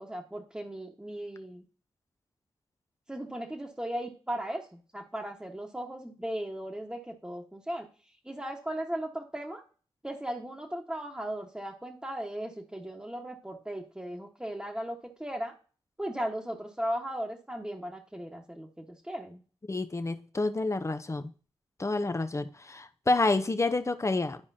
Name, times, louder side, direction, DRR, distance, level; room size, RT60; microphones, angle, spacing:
voice 1, 0.0-1.6 3.1-7.9 8.2-9.6 10.0-15.5 16.0-19.4, right 1 dB, 10° right, 1.4 m, -37 dB
voice 2, 19.7-21.3 21.8-24.4, left 2 dB, 30° left, 0.8 m, -29 dB
11.5 x 4.8 x 2.8 m
cardioid pair, 50°, 10 cm